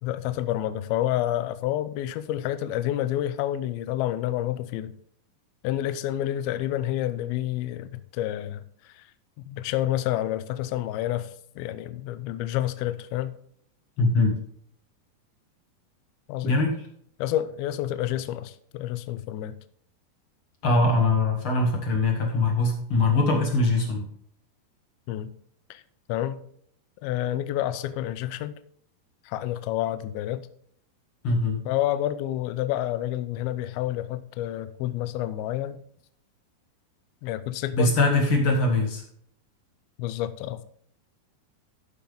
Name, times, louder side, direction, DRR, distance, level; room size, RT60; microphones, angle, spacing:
voice 1, 0.0-4.9 5.6-9.1 9.4-13.4 16.3-16.6 17.2-19.6 25.1-25.3 25.7-25.8 26.1-26.4 27.0-28.6 29.3-30.5 31.7-35.8 37.2-38.0 40.0-40.6, left 13 dB, 80° left, 2.3 m, -29 dB
voice 2, 14.0-14.4 16.4-16.8 20.6-24.1 31.2-31.6 37.7-39.0, left 2 dB, 45° left, 1.7 m, -22 dB
14.0 x 5.9 x 3.5 m
omnidirectional pair, 4.8 m